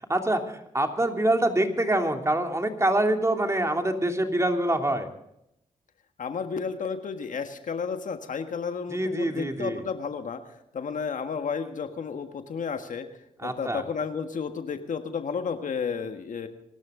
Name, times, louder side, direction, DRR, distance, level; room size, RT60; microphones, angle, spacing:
voice 1, 0.1-5.1 8.9-9.8 13.4-13.8, right 1 dB, 20° right, 4 dB, 3.0 m, -25 dB
voice 2, 6.2-13.0 13.4-16.5, left 6 dB, 65° left, 7 dB, 1.6 m, -32 dB
24.5 x 12.5 x 3.8 m, 0.78 s
supercardioid pair, 45°, 14 cm